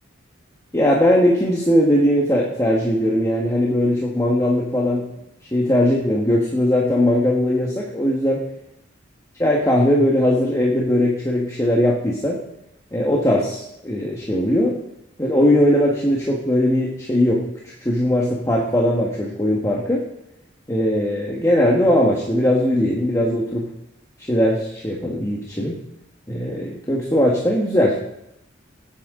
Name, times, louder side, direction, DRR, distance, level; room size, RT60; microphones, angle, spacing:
voice 1, 0.7-5.1 5.5-8.4 9.4-12.4 12.9-14.8 15.2-17.4 17.8-20.0 20.7-23.7 24.3-25.8 26.3-28.0, left 1 dB, 15° left, -3 dB, 1.4 m, -19 dB
19.0 x 8.7 x 3.8 m, 0.81 s
head